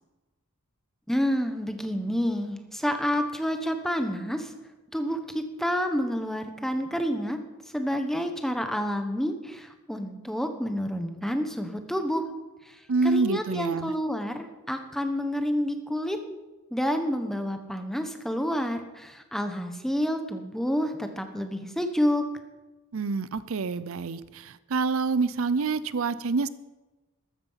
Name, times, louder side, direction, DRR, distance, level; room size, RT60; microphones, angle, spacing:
voice 1, 1.1-4.5 4.9-7.4 7.7-12.2 12.7-12.8 13.0-16.2 16.7-22.2, equal, ahead, 6 dB, 1.2 m, -29 dB
voice 2, 12.9-13.9 22.9-26.5, right 4 dB, 70° right, 16 dB, 0.5 m, -27 dB
14.0 x 13.5 x 5.7 m, 1.1 s
head